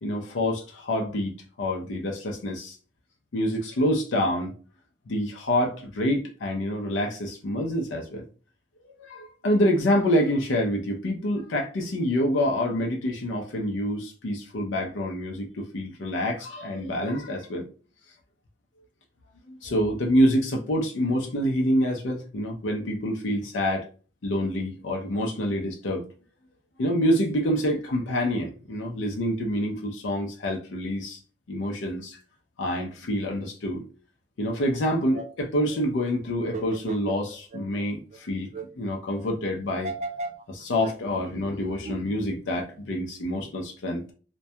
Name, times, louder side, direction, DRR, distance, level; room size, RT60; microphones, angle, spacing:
voice 1, 0.0-2.8 3.3-4.5 5.1-8.2 9.0-17.6 19.5-23.9 24.2-26.0 26.8-31.2 31.5-32.2 32.6-33.8 34.4-38.5 38.8-39.9 40.5-44.0, equal, 80° left, 1 dB, 0.5 m, -27 dB
sound 1, 34.7-34.8 35.1-35.3 35.7-35.8 36.4-37.8 38.1-38.2 38.5-38.7 39.1-39.2 39.7-40.4 40.8-40.9 41.4-41.5 41.8-42.0, right 3 dB, 35° right, 0.3 m, -35 dB
2.2 x 2.2 x 2.7 m, 0.38 s
head